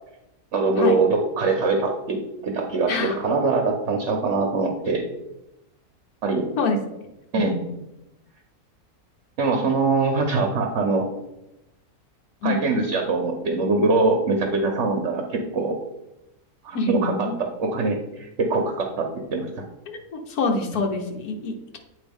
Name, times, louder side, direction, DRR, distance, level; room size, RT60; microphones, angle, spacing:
voice 1, 0.5-5.0 6.2-6.5 7.3-7.5 9.4-11.1 12.4-15.8 16.6-17.1 17.4-19.5, right 3 dB, 55° right, 3 dB, 1.0 m, -23 dB
voice 2, 2.9-3.3 4.3-4.4 6.6-6.8 7.3-7.7 12.4-12.7 16.7-17.3 19.9-21.8, left 3 dB, 80° left, 3 dB, 1.4 m, -26 dB
8.3 x 2.8 x 5.3 m, 0.92 s
omnidirectional pair, 1.6 m